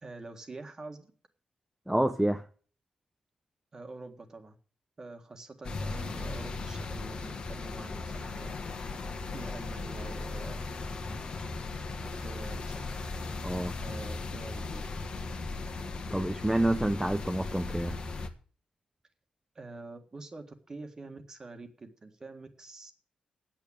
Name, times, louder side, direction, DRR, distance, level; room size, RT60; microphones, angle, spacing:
voice 1, 0.0-1.1 3.7-4.6 5.0-8.6 9.3-10.7 12.0-12.9 13.8-14.8 19.5-22.9, right 3 dB, 25° right, 1.7 m, -46 dB
voice 2, 1.9-2.4 13.4-13.7 16.1-18.0, right 1 dB, 5° right, 0.6 m, -28 dB
sound 1, 5.6-18.3, left 3 dB, 45° left, 1.5 m, -37 dB
8.7 x 8.7 x 8.6 m
wide cardioid pair, 140°, 2 cm